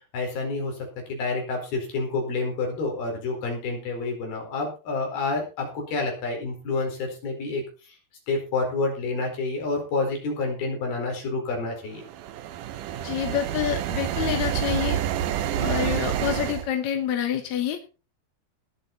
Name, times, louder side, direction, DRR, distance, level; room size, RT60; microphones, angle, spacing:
voice 1, 0.1-0.8 1.1-8.0 8.3-12.0, left 3 dB, 85° left, 2 dB, 6.5 m, -28 dB
sound 1, 12.0-16.7, right 11 dB, 70° right, 2.2 m, -28 dB
voice 2, 13.0-15.0 15.5-17.8, left 10 dB, 60° left, 6 dB, 2.2 m, -27 dB
19.0 x 7.9 x 4.2 m, 0.33 s
omnidirectional pair, 4.3 m